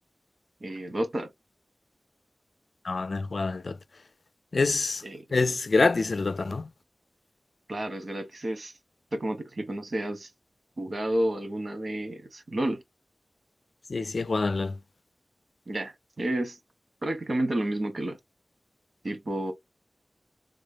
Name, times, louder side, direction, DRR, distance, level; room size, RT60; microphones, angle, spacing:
voice 1, 0.6-1.3 5.0-5.2 7.7-8.7 9.1-10.3 10.8-12.8 15.7-16.6 17.0-18.2 19.0-19.5, right 1 dB, 65° right, 1.4 m, -30 dB
voice 2, 2.8-3.8 4.5-5.0 5.3-6.7 13.9-14.8, left 3 dB, 75° left, 0.4 m, -26 dB
3.5 x 3.2 x 3.9 m
wide cardioid pair, 50°, 0 cm